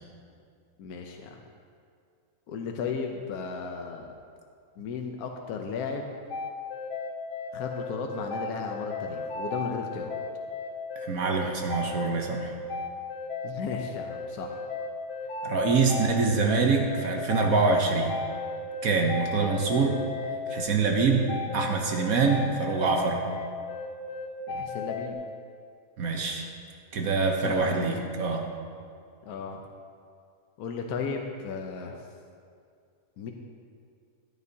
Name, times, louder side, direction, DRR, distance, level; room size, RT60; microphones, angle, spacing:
voice 1, 0.8-1.4 2.5-4.1 4.8-6.1 7.5-10.2 13.4-14.6 24.5-25.2 27.4-28.0 29.3-29.6 30.6-32.0 33.2-33.3, left 5 dB, 70° left, 2 dB, 1.2 m, -35 dB
sound 1, 6.3-25.1, left 4 dB, 90° left, 1.4 m, -35 dB
voice 2, 11.0-12.5 15.4-18.2 18.8-20.0 20.5-23.3 26.0-26.5 26.9-28.5, right 4 dB, 65° right, 2 dB, 1.2 m, -25 dB
14.5 x 10.0 x 2.8 m, 2.3 s
omnidirectional pair, 1.7 m